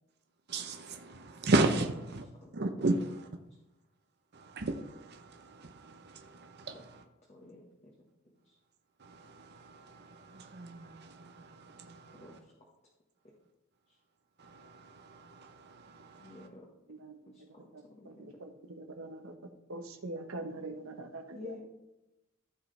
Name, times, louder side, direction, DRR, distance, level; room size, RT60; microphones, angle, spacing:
voice 1, 0.5-2.3 2.5-3.3 4.3-7.0 9.0-12.4 14.4-16.5, right 2 dB, 50° right, 6 dB, 0.7 m, -35 dB
voice 2, 7.3-7.6 12.2-12.3 16.2-16.6 17.9-18.3 21.3-21.6, left 3 dB, 30° left, -3 dB, 1.3 m, -47 dB
voice 3, 17.7-19.3 19.7-21.5, right 2 dB, 80° right, 6 dB, 1.1 m, -43 dB
14.5 x 4.9 x 3.3 m, 0.95 s
head